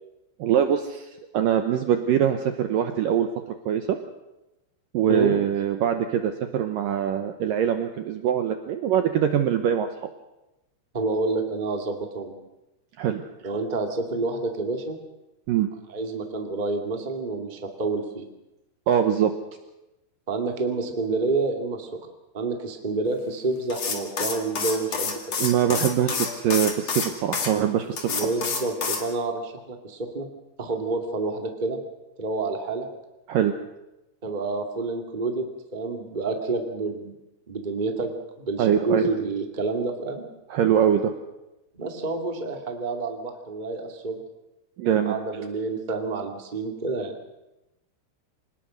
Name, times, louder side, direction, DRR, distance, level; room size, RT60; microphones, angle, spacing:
voice 1, 0.4-3.3 3.7-4.0 4.9-10.1 13.0-13.2 15.5-15.7 18.9-19.3 25.4-28.3 33.3-33.5 38.6-39.1 40.5-41.1 44.8-45.2, right 9 dB, 80° right, 7 dB, 1.9 m, -23 dB
voice 2, 10.9-12.3 13.4-15.0 15.9-18.2 20.3-21.9 22.3-25.3 28.1-30.3 30.6-31.8 32.2-32.9 34.2-37.1 37.5-38.1 38.4-40.2 41.7-44.2 45.0-47.1, right 3 dB, 35° right, 4 dB, 0.7 m, -28 dB
sound 1, 23.7-27.5 28.0-29.0, left 5 dB, 45° left, 2.8 m, -28 dB
26.0 x 19.0 x 6.4 m, 0.95 s
omnidirectional pair, 5.3 m